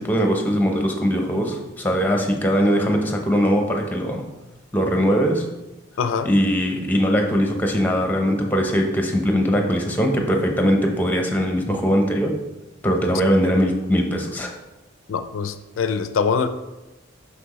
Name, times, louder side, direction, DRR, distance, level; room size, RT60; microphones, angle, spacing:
voice 1, 0.0-4.3 4.7-5.5 6.2-12.3 12.8-14.5, equal, 10° left, 3 dB, 0.8 m, -21 dB
voice 2, 6.0-6.3 15.1-16.5, left 6 dB, 80° left, 10 dB, 0.4 m, -23 dB
6.0 x 5.7 x 3.1 m, 1.0 s
head